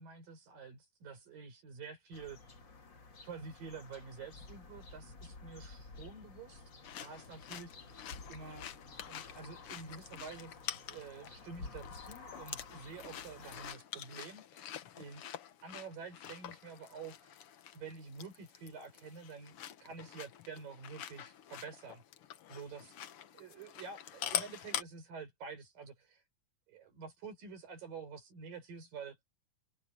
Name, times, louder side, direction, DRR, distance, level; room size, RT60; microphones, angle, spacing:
voice 1, 0.0-2.4 3.2-6.7 7.0-7.7 8.3-8.7 9.1-10.6 10.9-15.2 15.6-17.3 17.7-22.0 22.5-23.0 23.3-26.2 26.7-29.2, right 5 dB, 80° right, 7.0 m, -48 dB
sound 1, 2.1-13.7, left 3 dB, 35° left, 2.8 m, -52 dB
sound 2, 6.8-24.8, left 10 dB, 70° left, 1.4 m, -46 dB
omnidirectional pair, 3.9 m